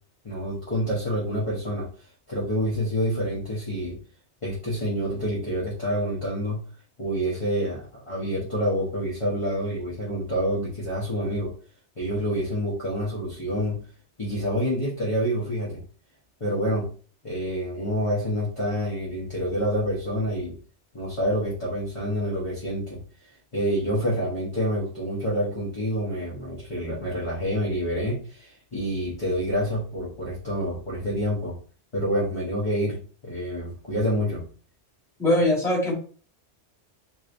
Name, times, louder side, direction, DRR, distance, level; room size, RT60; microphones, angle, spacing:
voice 1, 0.2-1.9 2.3-4.0 4.4-6.6 7.0-11.5 12.0-13.8 14.2-15.8 16.4-16.9 17.2-20.6 20.9-23.0 23.5-31.6 31.9-34.5, equal, 30° left, -6 dB, 1.0 m, -27 dB
voice 2, 35.2-36.0, left 1 dB, 5° left, -6 dB, 1.5 m, -21 dB
3.0 x 3.0 x 2.5 m, 0.40 s
omnidirectional pair, 1.2 m